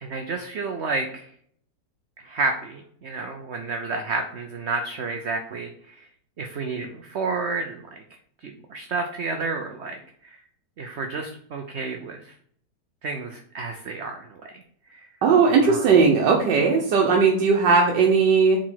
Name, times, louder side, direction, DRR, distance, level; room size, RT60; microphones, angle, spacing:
voice 1, 0.0-1.3 2.2-6.1 6.4-8.0 8.4-10.0 10.8-12.3 13.0-14.4 14.9-15.1 15.6-15.9, right 4 dB, 55° right, 4 dB, 0.8 m, -30 dB
voice 2, 15.2-18.6, right 5 dB, 85° right, -1 dB, 1.6 m, -18 dB
5.1 x 4.3 x 5.7 m, 0.64 s
omnidirectional pair, 1.8 m